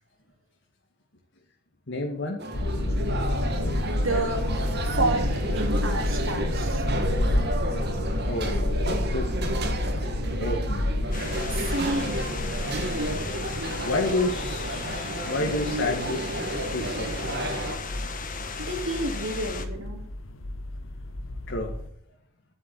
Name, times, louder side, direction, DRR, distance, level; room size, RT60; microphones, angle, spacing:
voice 1, 1.9-2.4 8.3-9.6 10.4-10.9 13.8-16.2 16.7-17.5 21.5-21.7, left 2 dB, 65° left, 0 dB, 2.1 m, -30 dB
sound 1, 2.4-17.8, right 1 dB, 55° right, 2.0 m, -32 dB
sound 2, 2.5-21.9, left 1 dB, 90° left, 1.2 m, -30 dB
voice 2, 3.5-4.5 4.8-6.9 11.5-12.3 18.6-20.0, right 2 dB, 90° right, 2 dB, 3.5 m, -30 dB
sound 3, 11.1-19.7, left 5 dB, 45° left, 1.6 m, -37 dB
11.5 x 8.4 x 7.9 m, 0.66 s
head